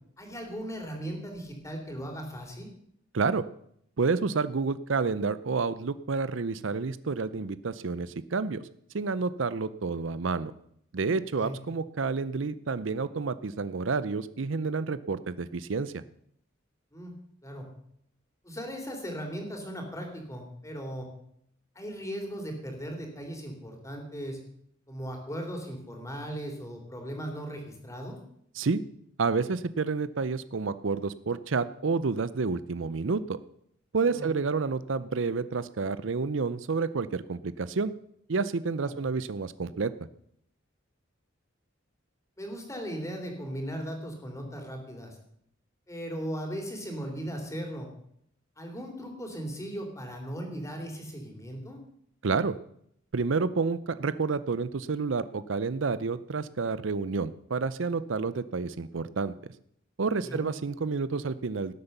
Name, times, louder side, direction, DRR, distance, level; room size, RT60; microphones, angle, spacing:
voice 1, 0.2-2.7 11.3-11.6 16.9-17.1 17.4-17.7 18.4-21.1 21.8-24.4 24.9-28.2 34.1-34.3 38.8-39.0 42.4-45.2 45.9-47.9 48.6-51.8 60.2-60.5, equal, 15° left, 2 dB, 3.5 m, -37 dB
voice 2, 3.1-3.4 4.0-8.7 8.9-10.5 10.9-15.9 28.6-28.8 29.2-33.4 33.9-37.9 38.3-39.9 52.2-52.6 53.1-59.3 60.0-61.7, right 4 dB, 70° right, 15 dB, 0.6 m, -29 dB
18.0 x 8.1 x 6.7 m, 0.70 s
head